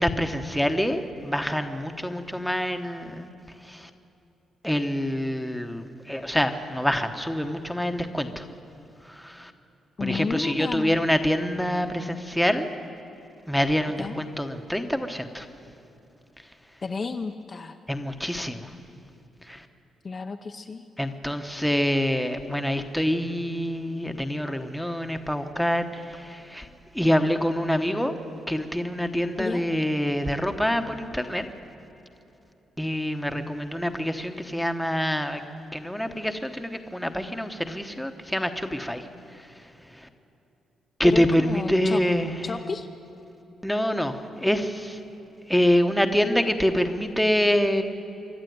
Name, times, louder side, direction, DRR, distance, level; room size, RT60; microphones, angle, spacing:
voice 1, 0.0-3.3 3.6-3.9 4.6-8.5 9.0-9.5 10.0-12.7 13.5-15.5 17.9-18.7 19.5-19.7 21.0-26.7 26.9-28.1 28.5-31.5 32.8-35.4 35.7-39.1 39.3-39.5 39.9-40.1 41.0-42.3 43.6-45.0 45.5-47.8, equal, ahead, 6 dB, 1.1 m, -26 dB
voice 2, 10.0-11.0 14.0-14.2 16.8-17.8 20.0-20.8 29.4-29.6 41.0-42.0 42.4-42.9, left 4 dB, 30° left, 5 dB, 0.7 m, -32 dB
26.0 x 12.0 x 9.4 m, 3.0 s
cardioid pair, 145°, 0 cm